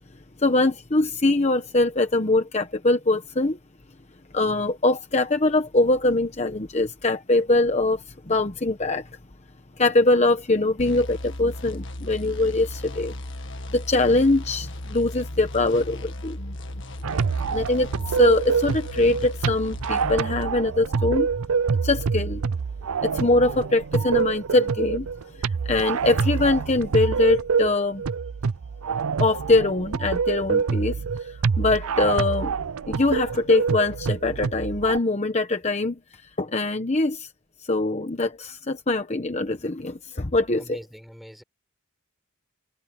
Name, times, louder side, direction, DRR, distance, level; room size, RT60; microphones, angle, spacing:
voice 1, 0.4-3.6 4.3-9.1 9.8-13.1 13.7-16.4 17.5-21.3 21.8-22.4 23.0-25.1 25.6-28.0 29.2-32.5 32.9-37.3 37.7-40.8, left 2 dB, 30° left, 1.0 m, -23 dB
sound 1, 10.8-20.2, left 1 dB, 55° left, 1.7 m, -36 dB
sound 2, 17.0-35.0, right 5 dB, 85° right, 0.5 m, -26 dB
voice 2, 40.5-41.4, equal, ahead, 5.7 m, -43 dB
head